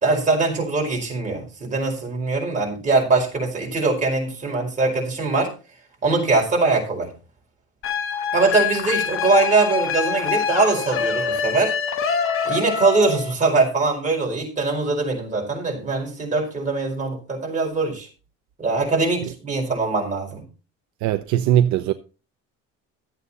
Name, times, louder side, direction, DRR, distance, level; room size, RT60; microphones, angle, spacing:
voice 1, 0.0-5.5 6.0-7.1 8.3-11.7 12.4-18.1 18.6-20.4, right 3 dB, 25° right, 4.8 m, -22 dB
sound 1, 7.8-13.3, left 6 dB, 45° left, 1.3 m, -25 dB
voice 2, 21.0-21.9, right 11 dB, 70° right, 0.9 m, -19 dB
13.0 x 8.1 x 4.1 m
cardioid pair, 160°, 30 cm